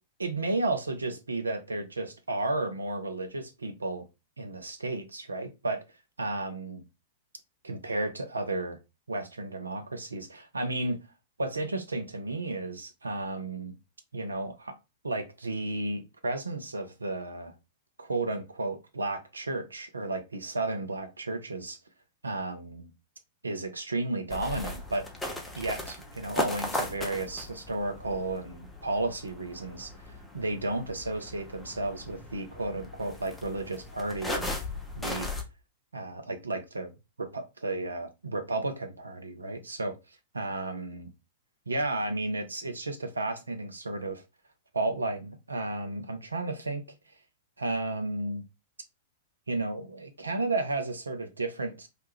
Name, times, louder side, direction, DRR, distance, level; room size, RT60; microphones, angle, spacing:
voice 1, 0.2-4.1 4.4-5.8 6.2-6.8 7.6-8.8 9.1-11.1 11.4-13.8 14.1-14.8 15.0-17.5 18.0-21.8 22.2-22.9 23.4-25.1 25.5-34.6 35.0-35.3 35.9-36.9 37.2-39.9 40.3-41.1 41.7-44.2 44.7-46.8 47.6-48.4 49.5-51.9, right 2 dB, 80° right, 0.5 m, -33 dB
sound 1, 24.3-35.4, left 1 dB, 10° left, 0.5 m, -37 dB
2.4 x 2.2 x 3.2 m
figure-of-eight pair, 100°, 0 cm